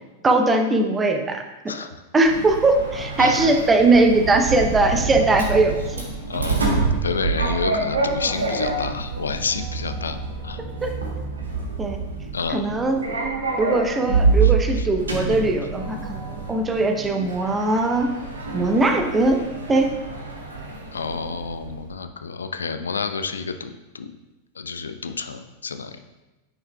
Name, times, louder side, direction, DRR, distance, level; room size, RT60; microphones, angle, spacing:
voice 1, 0.2-1.4 2.1-6.0 10.8-10.9 11.8-12.0 12.5-13.1 13.6-18.1 18.5-19.4 19.7-19.9, right 2 dB, 15° right, 5 dB, 0.7 m, -20 dB
Sliding door, 2.2-21.8, right 4 dB, 75° right, 1.1 m, -27 dB
voice 2, 6.3-10.2 10.4-10.6 12.3-12.7 14.4-14.9 20.9-24.1 24.6-26.0, left 5 dB, 70° left, 9 dB, 0.4 m, -29 dB
9.5 x 5.6 x 2.3 m, 1.1 s
figure-of-eight pair, 90°, 0 cm